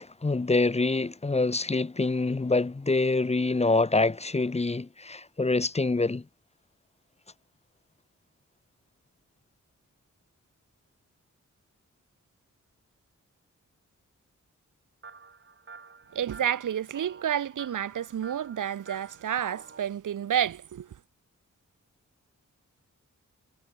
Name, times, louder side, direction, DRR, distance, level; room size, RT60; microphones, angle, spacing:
voice 1, 0.0-6.2, left 3 dB, 20° left, 0.9 m, -26 dB
sound 1, 15.0-19.8, right 4 dB, 40° right, 4.9 m, -50 dB
voice 2, 16.1-20.9, right 9 dB, 80° right, 0.8 m, -30 dB
wide cardioid pair, 175°, 31 cm